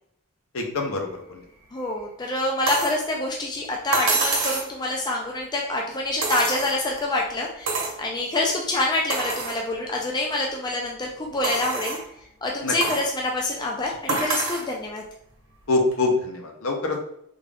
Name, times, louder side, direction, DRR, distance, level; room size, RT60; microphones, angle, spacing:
voice 1, 0.5-1.4 12.6-12.7 14.1-14.2 15.7-17.0, left 3 dB, 65° left, 2 dB, 0.7 m, -25 dB
voice 2, 1.7-12.0 12.4-15.0, left 2 dB, 20° left, -1 dB, 0.3 m, -26 dB
sound 1, 2.7-3.0 3.9-4.7 6.2-7.0 7.7-8.0 8.5-8.6 9.1-9.6 10.2-10.3 11.4-12.0 12.8-13.1 14.1-14.7 15.9-16.0, right 3 dB, 60° right, 1.0 m, -26 dB
3.6 x 2.3 x 3.3 m, 0.73 s
head